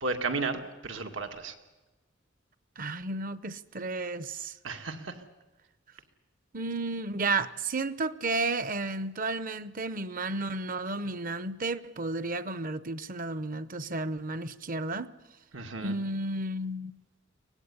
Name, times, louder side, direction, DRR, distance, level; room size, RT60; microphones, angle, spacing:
voice 1, 0.0-1.5 4.6-5.2 15.5-16.0, right 3 dB, 85° right, 2.3 m, -33 dB
voice 2, 2.8-4.5 6.5-15.1 15.8-16.9, right 3 dB, 45° right, 0.9 m, -32 dB
24.0 x 18.5 x 9.8 m
head